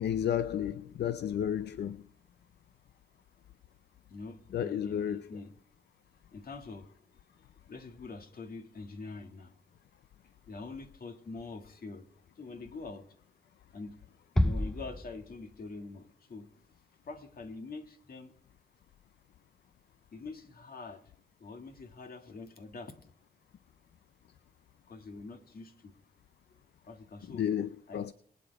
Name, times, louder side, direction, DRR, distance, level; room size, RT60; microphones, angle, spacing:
voice 1, 0.0-2.1 4.5-5.3 27.3-28.1, left 9 dB, 75° left, 0.5 m, -32 dB
voice 2, 4.1-5.5 6.3-6.9 7.7-9.6 10.5-12.1 12.4-13.0 13.7-14.0 14.3-16.5 17.1-18.3 20.1-21.0 21.4-22.9 24.9-25.9 26.8-27.5 27.9-28.1, left 3 dB, 60° left, 1.9 m, -45 dB
Bass drum, 14.4-15.8, left 1 dB, 5° left, 0.4 m, -30 dB
22.5 x 8.8 x 3.4 m
cardioid pair, 90°, 17 cm